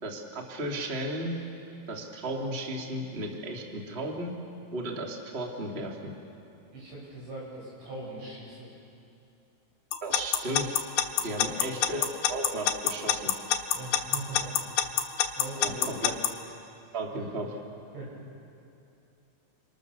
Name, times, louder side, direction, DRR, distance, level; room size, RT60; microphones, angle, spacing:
voice 1, 0.0-1.3 1.9-4.3 4.7-6.1 10.0-10.7 11.2-13.3 15.5-16.1 16.9-17.5, right 1 dB, 85° right, 0 dB, 0.5 m, -34 dB
voice 2, 6.7-8.7 11.1-11.4 13.7-14.5 15.4-15.9 17.1-17.2 17.9-18.1, right 2 dB, 60° right, -5 dB, 10.0 m, -41 dB
Alarm / Clock, 9.9-16.3, left 11 dB, 70° left, 2.8 m, -24 dB
29.0 x 26.5 x 6.7 m, 2.7 s
omnidirectional pair, 6.0 m